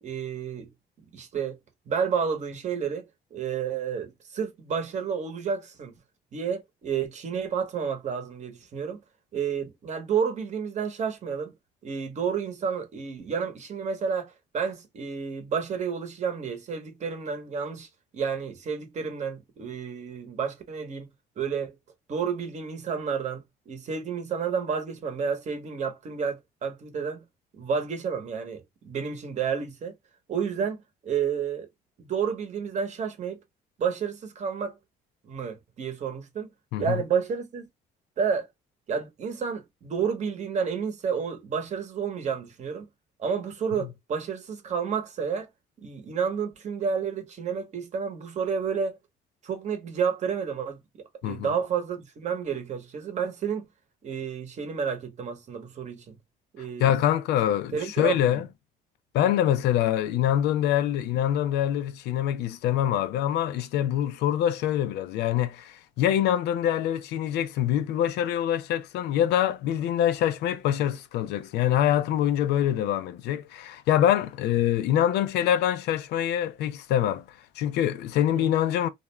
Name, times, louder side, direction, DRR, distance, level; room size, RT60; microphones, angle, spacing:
voice 1, 0.0-0.7 1.1-1.6 1.9-3.1 3.3-6.0 6.3-9.0 9.3-11.5 11.8-17.9 18.1-21.1 21.4-21.7 22.1-27.2 27.5-29.9 30.3-31.7 32.0-33.4 33.8-34.7 35.2-36.5 36.8-37.7 38.2-38.5 38.9-42.9 43.2-45.5 45.8-49.0 49.4-53.7 54.0-56.2 56.5-56.9 57.7-58.4 78.3-78.5, right 6 dB, 45° right, 0.8 m, -30 dB
voice 2, 56.8-58.4 59.1-77.2 77.6-78.9, left 11 dB, 80° left, 0.4 m, -25 dB
2.4 x 2.1 x 3.0 m
cardioid pair, 110°, 17 cm